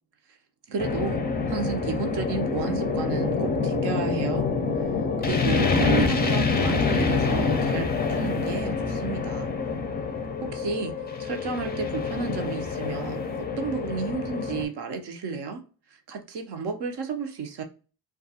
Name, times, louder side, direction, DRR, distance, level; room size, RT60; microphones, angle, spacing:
voice 1, 0.7-1.2 1.5-4.5 4.8-4.9 5.2-9.5 10.4-10.9 11.2-17.6, right 5 dB, 60° right, 0.7 m, -32 dB
sound 1, 0.8-14.7, left 4 dB, 20° left, 0.5 m, -26 dB
2.4 x 2.2 x 2.7 m
cardioid pair, 65°, 45 cm